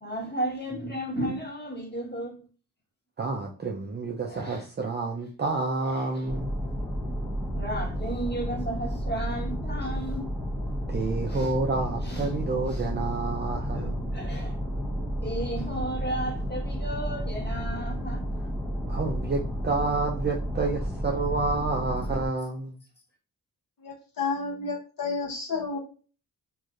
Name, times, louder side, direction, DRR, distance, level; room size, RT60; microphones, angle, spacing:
voice 1, 0.0-2.4 4.2-4.6 5.8-6.3 7.5-10.3 11.3-11.5 12.0-12.4 12.7-12.9 13.7-14.6 15.2-18.2, right 1 dB, 25° left, 1.3 m, -34 dB
voice 2, 3.2-6.5 10.9-14.3 18.9-22.8, right 3 dB, 30° right, 0.4 m, -29 dB
sound 1, 6.3-22.3, equal, ahead, 0.9 m, -31 dB
voice 3, 23.8-25.8, left 4 dB, 60° left, 1.1 m, -31 dB
3.1 x 2.7 x 2.4 m
cardioid pair, 80°, 37 cm